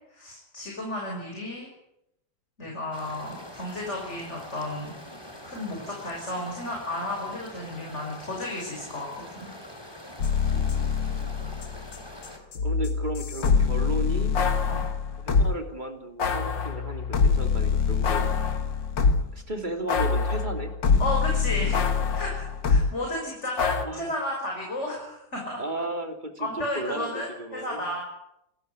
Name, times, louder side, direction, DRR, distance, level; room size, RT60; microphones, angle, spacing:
voice 1, 0.1-1.7 2.6-4.9 5.4-9.5 11.4-11.6 14.7-14.9 21.0-21.8 22.1-25.6 26.4-28.0, left 1 dB, 35° left, -1 dB, 6.3 m, -33 dB
sound 1, 2.9-12.4, left 1 dB, 10° left, 4.0 m, -44 dB
sound 2, 10.2-12.0 12.2-15.6 16.2-19.4 19.9-22.9 23.6-23.9, left 5 dB, 75° left, 2.4 m, -24 dB
voice 2, 10.5-10.9 12.3-12.4 12.6-14.3 15.2-18.3 19.3-20.7 21.3-21.7 23.8-24.1 25.6-27.8, right 1 dB, 25° right, 5 dB, 3.0 m, -34 dB
28.5 x 14.0 x 9.6 m, 0.82 s
omnidirectional pair, 2.0 m